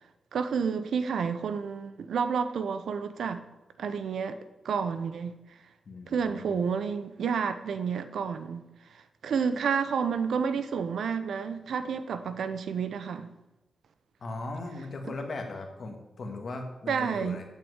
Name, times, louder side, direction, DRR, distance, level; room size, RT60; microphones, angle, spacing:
voice 1, 0.3-3.4 3.8-4.4 4.6-5.4 6.1-13.3 15.0-15.1 16.9-17.4, right 6 dB, 80° right, 0.8 m, -30 dB
voice 2, 5.8-6.6 14.2-17.4, left 2 dB, 45° left, 1.8 m, -38 dB
9.0 x 7.5 x 8.1 m
wide cardioid pair, 165°, 0 cm